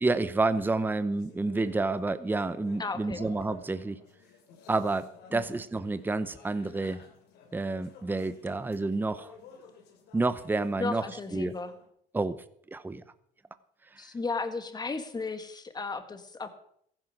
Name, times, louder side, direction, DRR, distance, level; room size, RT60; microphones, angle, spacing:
voice 1, 0.0-4.0 4.7-7.0 7.5-9.3 10.1-11.5 12.1-12.4 12.7-13.0, right 3 dB, 10° right, 13 dB, 0.7 m, -29 dB
sound 1, 1.0-11.9, left 5 dB, 80° left, 2.9 m, -53 dB
voice 2, 2.8-3.2 5.3-5.4 10.8-11.7 14.0-16.5, left 4 dB, 25° left, 9 dB, 1.8 m, -34 dB
15.0 x 11.0 x 6.4 m, 0.68 s
cardioid pair, 110°, 17 cm